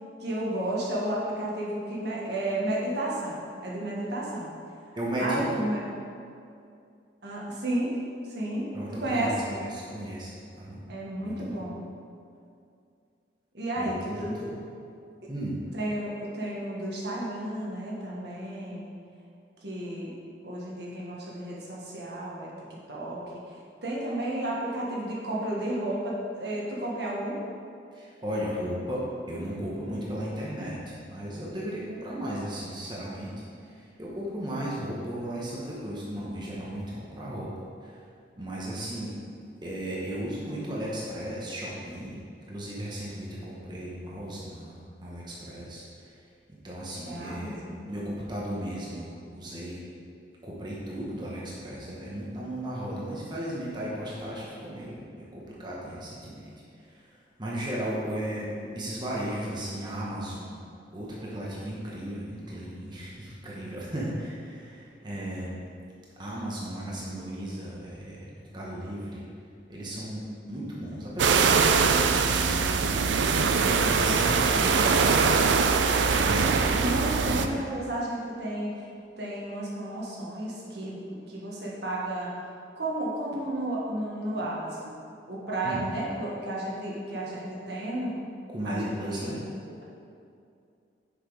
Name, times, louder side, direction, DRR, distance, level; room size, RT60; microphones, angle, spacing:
voice 1, 0.2-4.5 4.8-5.8 7.2-8.0 8.3-9.4 10.9-11.8 13.5-14.4 15.7-18.9 19.6-20.1 20.4-22.5 22.9-23.2 23.5-23.6 23.8-27.4 47.0-47.9 73.5-74.7 76.1-78.8 79.2-82.3 82.8-85.0 85.3-88.2 88.6-89.3, right 1 dB, 65° right, -4 dB, 1.5 m, -32 dB
voice 2, 5.0-5.6 8.7-10.8 11.2-11.6 13.8-14.6 15.3-15.6 27.9-33.3 33.6-37.5 37.8-38.0 38.4-39.1 39.6-42.2 42.5-44.7 45.0-46.2 46.6-49.1 49.3-49.8 50.4-56.5 56.8-57.1 57.4-60.6 60.9-65.6 66.2-69.2 69.7-72.9 73.4-75.0 76.2-76.9 77.2-77.5 85.6-85.8 88.5-89.4, right 1 dB, 25° right, -6 dB, 1.1 m, -35 dB
sound 1, 71.2-77.5, right 5 dB, 80° right, 0.5 m, -22 dB
6.7 x 5.9 x 4.8 m, 2.5 s
head